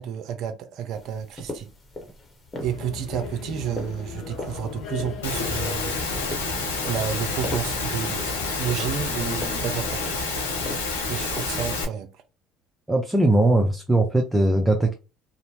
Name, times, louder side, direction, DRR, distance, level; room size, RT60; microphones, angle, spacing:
voice 1, 0.0-1.7 2.6-5.9 6.9-10.4 11.1-12.2, right 9 dB, 60° right, 0.5 m, -31 dB
sound 1, 0.9-11.7, left 1 dB, 25° left, 1.1 m, -40 dB
sound 2, 2.5-9.8, left 5 dB, 60° left, 0.8 m, -37 dB
Engine / Mechanisms, 5.2-11.8, left 3 dB, 85° left, 0.7 m, -28 dB
voice 2, 12.9-14.9, right 1 dB, 15° right, 0.6 m, -20 dB
2.6 x 2.1 x 3.0 m
hypercardioid pair, 65°, 0 cm